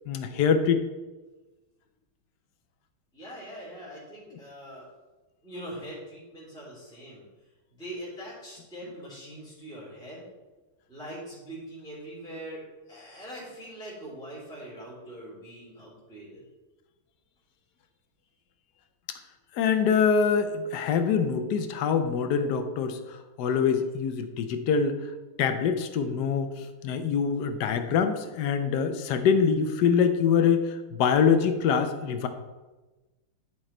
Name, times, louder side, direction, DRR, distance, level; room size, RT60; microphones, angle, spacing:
voice 1, 0.1-0.8 19.5-23.0 23.4-25.0 25.4-26.5 26.8-32.3, left 6 dB, 65° left, 8 dB, 1.1 m, -24 dB
voice 2, 3.1-4.9 5.4-7.2 7.7-10.3 10.9-16.4, right 1 dB, ahead, -7 dB, 2.8 m, -42 dB
11.0 x 4.6 x 4.3 m, 1.2 s
omnidirectional pair, 2.3 m